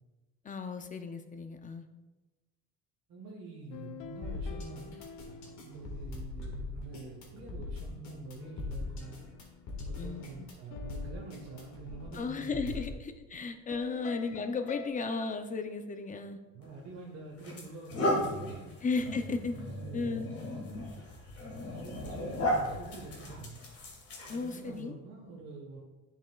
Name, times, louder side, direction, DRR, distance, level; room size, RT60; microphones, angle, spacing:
voice 1, 0.4-1.8 10.0-10.5 12.1-16.4 18.8-19.6 19.9-20.3 24.3-24.9, left 4 dB, 25° left, 7 dB, 0.5 m, -35 dB
voice 2, 3.1-5.0 5.6-9.2 9.8-12.8 13.8-14.0 16.5-18.8 19.5-20.3 21.7-23.6 24.3-25.8, right 3 dB, 55° right, -2 dB, 1.3 m, -46 dB
sound 1, 3.7-6.6 7.9-12.4 13.7-14.9, left 5 dB, 80° left, 0.6 m, -49 dB
sound 2, 4.2-12.9, left 3 dB, 65° left, 1.7 m, -41 dB
sound 3, 16.6-16.8 17.4-24.8, left 1 dB, 50° left, 1.9 m, -35 dB
10.5 x 5.6 x 2.3 m, 1.2 s
cardioid pair, 130°, 32 cm